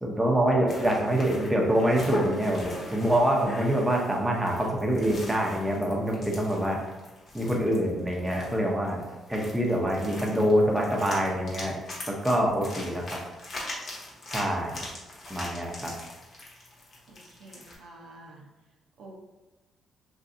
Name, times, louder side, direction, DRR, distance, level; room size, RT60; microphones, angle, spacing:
voice 1, 0.0-6.8 7.3-9.0 9.3-11.8 12.1-13.0 14.3-14.7 15.3-15.9, equal, 10° right, -1 dB, 0.6 m, -25 dB
sound 1, 0.7-17.8, left 1 dB, 50° left, 0.9 m, -42 dB
voice 2, 17.1-18.5 19.0-19.2, right 2 dB, 80° right, -1 dB, 0.6 m, -48 dB
3.1 x 2.6 x 2.5 m, 1.1 s
cardioid pair, 90°, 0 cm